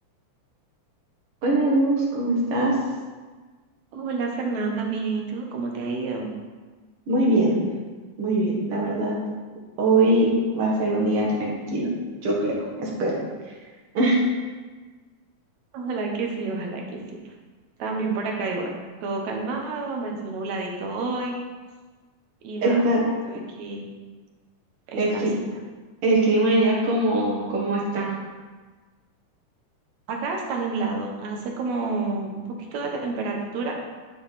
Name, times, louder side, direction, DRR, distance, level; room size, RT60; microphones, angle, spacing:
voice 1, 1.4-2.8 7.1-7.7 8.2-9.2 9.8-11.9 12.2-13.2 13.9-14.2 22.6-23.0 25.0-25.3 26.0-28.1, right 2 dB, 50° right, -3 dB, 2.2 m, -22 dB
voice 2, 3.9-6.3 15.7-17.2 17.8-18.7 19.0-21.4 22.4-22.9 23.3-23.9 24.9-25.4 30.1-33.8, right 3 dB, 65° right, 1 dB, 2.3 m, -29 dB
10.0 x 5.3 x 4.1 m, 1.4 s
omnidirectional pair, 3.7 m